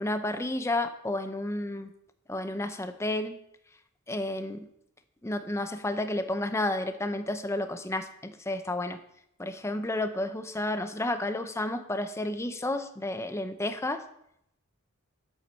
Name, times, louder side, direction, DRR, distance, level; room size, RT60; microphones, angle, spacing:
voice 1, 0.0-1.9 2.3-3.4 4.1-4.7 5.2-9.0 9.4-14.0, left 1 dB, 15° left, 9 dB, 0.6 m, -31 dB
8.2 x 7.3 x 5.4 m, 0.74 s
head